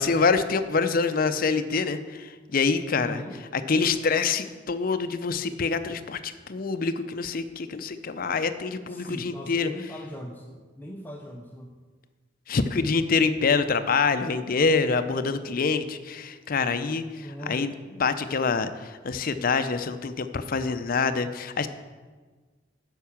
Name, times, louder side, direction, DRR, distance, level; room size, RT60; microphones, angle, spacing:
voice 1, 0.0-3.2 3.5-9.7 12.5-17.7 18.0-21.7, left 4 dB, 50° left, 11 dB, 0.5 m, -26 dB
voice 2, 3.0-3.4 8.9-11.7 17.1-17.7, equal, 10° left, 1 dB, 0.6 m, -39 dB
9.3 x 5.8 x 7.1 m, 1.4 s
head